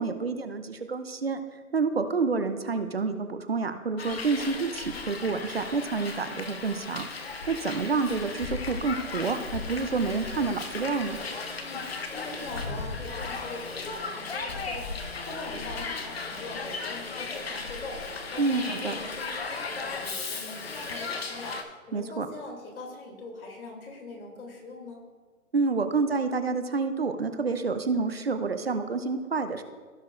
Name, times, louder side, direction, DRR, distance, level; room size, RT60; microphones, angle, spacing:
voice 1, 0.0-1.4 1.7-7.1 7.5-11.2 18.4-18.9 21.9-22.3 25.5-29.6, right 4 dB, 45° right, 9 dB, 0.6 m, -28 dB
Hiss, 4.0-21.6, left 4 dB, 45° left, 0.8 m, -36 dB
voice 2, 11.6-25.0, left 2 dB, 75° left, 0 dB, 2.8 m, -42 dB
16.5 x 5.8 x 2.5 m, 1.5 s
hypercardioid pair, 180°, 43 cm